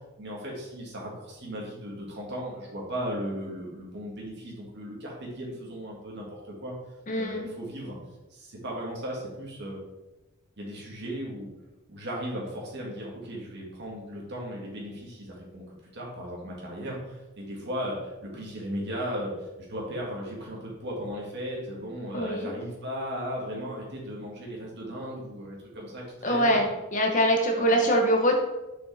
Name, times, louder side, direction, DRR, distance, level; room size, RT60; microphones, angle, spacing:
voice 1, 0.2-6.7 7.2-7.9 8.3-9.8 10.6-11.5 11.9-26.6 27.5-27.9, equal, 50° right, -3 dB, 2.1 m, -36 dB
voice 2, 7.1-7.5 22.1-22.5 26.2-28.4, equal, 35° left, 2 dB, 0.9 m, -23 dB
6.6 x 5.7 x 3.5 m, 1.0 s
head